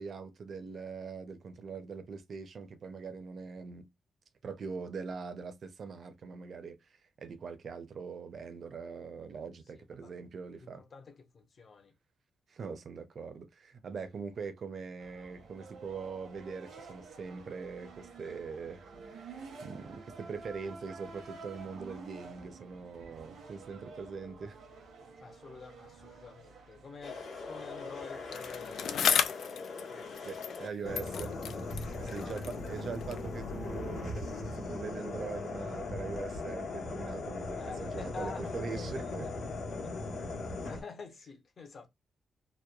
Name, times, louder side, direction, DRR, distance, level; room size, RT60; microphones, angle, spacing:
voice 1, 0.0-3.9 4.4-10.8 12.5-24.6 30.2-31.3 31.9-39.3, right 5 dB, 50° right, 0.4 m, -42 dB
voice 2, 9.8-10.1 10.6-11.9 25.2-29.2 29.9-31.4 32.0-32.3 37.6-39.6 39.8-40.0 40.7-41.9, left 4 dB, 45° left, 0.6 m, -49 dB
sound 1, 15.0-29.3, right 4 dB, 90° right, 0.8 m, -50 dB
sound 2, 27.0-40.8, left 3 dB, 70° left, 1.0 m, -39 dB
Bicycle, 28.3-30.7 30.9-33.3 34.1-34.2, left 8 dB, 85° left, 0.3 m, -34 dB
2.9 x 2.1 x 2.3 m
wide cardioid pair, 155°, 0 cm